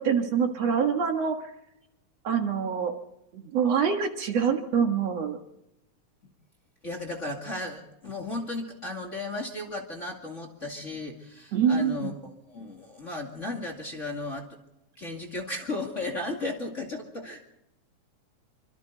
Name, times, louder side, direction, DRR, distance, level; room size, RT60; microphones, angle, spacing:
voice 1, 0.0-1.4 2.2-2.9 3.3-5.4 11.5-12.1, right 7 dB, 60° right, 4 dB, 2.6 m, -25 dB
voice 2, 6.8-14.5 15.0-17.4, left 2 dB, 25° left, 1 dB, 2.4 m, -35 dB
27.0 x 25.0 x 4.0 m, 0.86 s
omnidirectional pair, 3.5 m